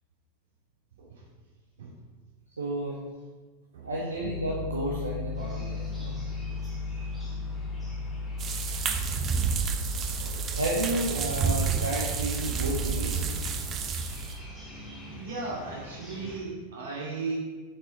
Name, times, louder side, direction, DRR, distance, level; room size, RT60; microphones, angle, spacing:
voice 1, 2.6-3.0 3.8-6.1 10.0-13.4, right 1 dB, 75° right, -4 dB, 1.1 m, -32 dB
Piano, 4.2-14.5, left 3 dB, 50° left, 0.6 m, -36 dB
sound 1, 5.3-16.4, equal, ahead, 2.6 m, -46 dB
voice 2, 6.5-7.2 14.1-14.2 15.1-17.4, right 3 dB, 60° right, -3 dB, 2.4 m, -37 dB
sound 2, 8.4-14.4, right 6 dB, 30° right, 0.6 m, -30 dB
7.3 x 5.6 x 4.4 m, 1.3 s
figure-of-eight pair, 90°, 0 cm